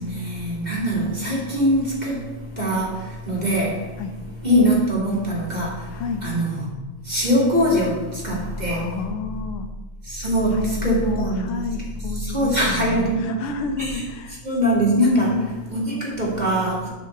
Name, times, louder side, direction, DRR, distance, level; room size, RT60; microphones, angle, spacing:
voice 1, 0.0-2.2 2.6-2.9 3.3-3.7 4.4-5.7 6.2-6.7 7.1-8.8 10.1-11.6 12.2-13.4 13.8-14.0 14.4-15.4 15.7-16.9, equal, 20° right, -4 dB, 2.3 m, -22 dB
voice 2, 5.9-6.2 8.4-9.7 10.5-14.4 15.2-15.6, left 4 dB, 80° left, 6 dB, 1.8 m, -30 dB
9.3 x 4.4 x 7.2 m, 1.1 s
omnidirectional pair, 2.4 m